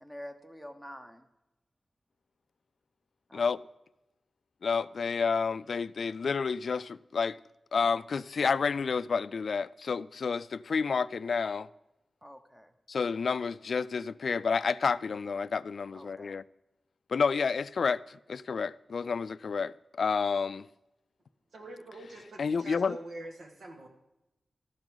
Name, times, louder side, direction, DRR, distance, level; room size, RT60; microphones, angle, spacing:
voice 1, 0.0-1.2 3.3-3.5 12.2-12.7 15.9-16.3, equal, 10° right, 1.0 m, -47 dB
voice 2, 4.6-7.4 7.7-11.7 12.9-16.4 17.1-20.7 22.4-23.0, left 5 dB, 70° left, 0.3 m, -30 dB
voice 3, 21.5-23.9, right 1 dB, 85° right, 2.0 m, -45 dB
13.0 x 12.0 x 3.9 m
wide cardioid pair, 115°, 0 cm